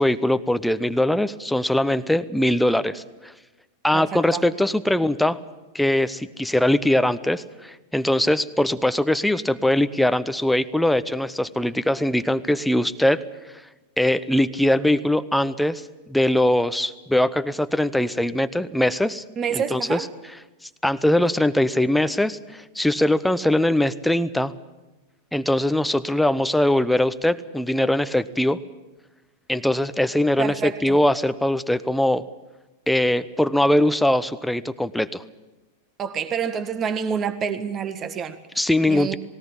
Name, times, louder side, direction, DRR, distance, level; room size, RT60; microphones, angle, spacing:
voice 1, 0.0-3.3 3.8-5.4 5.7-13.2 14.0-19.2 19.5-20.1 20.8-24.5 25.3-28.6 29.5-32.2 32.9-35.2 38.6-39.1, left 1 dB, 5° left, 12 dB, 0.8 m, -21 dB
voice 2, 3.9-4.4 19.4-20.1 30.4-31.0 36.0-38.4 38.9-39.2, right 7 dB, 30° right, 10 dB, 1.7 m, -27 dB
19.0 x 18.0 x 8.8 m, 1.1 s
hypercardioid pair, 95°, 0 cm